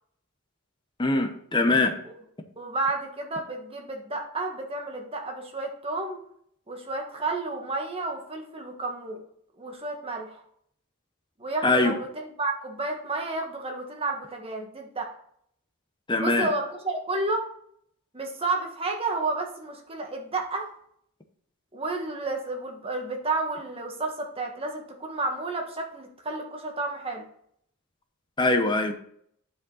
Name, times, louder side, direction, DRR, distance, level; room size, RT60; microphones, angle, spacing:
voice 1, 1.0-2.0 11.6-11.9 16.1-16.5 28.4-28.9, left 2 dB, 20° left, 7 dB, 0.8 m, -22 dB
voice 2, 2.6-6.2 6.7-9.2 9.6-10.4 11.4-15.1 16.2-17.4 18.1-20.7 21.7-27.2, right 2 dB, 25° right, 2 dB, 1.5 m, -31 dB
8.8 x 5.2 x 3.9 m, 0.66 s
head